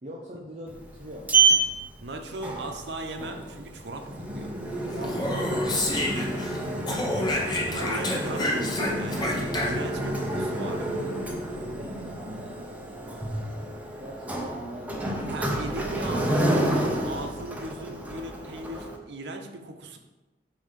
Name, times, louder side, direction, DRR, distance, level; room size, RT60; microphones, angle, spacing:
voice 1, 0.0-1.4 4.9-6.9 9.2-9.4 10.6-12.7 14.0-15.2, equal, 40° right, -3 dB, 0.8 m, -42 dB
Sliding door, 0.7-19.0, right 2 dB, 10° right, 0.7 m, -29 dB
voice 2, 2.0-4.5 6.9-10.8 15.3-20.0, right 2 dB, 75° right, 5 dB, 0.7 m, -38 dB
Speech, 4.9-6.6 6.9-10.0, left 1 dB, 25° left, 0.9 m, -29 dB
7.0 x 2.7 x 5.1 m, 1.1 s
head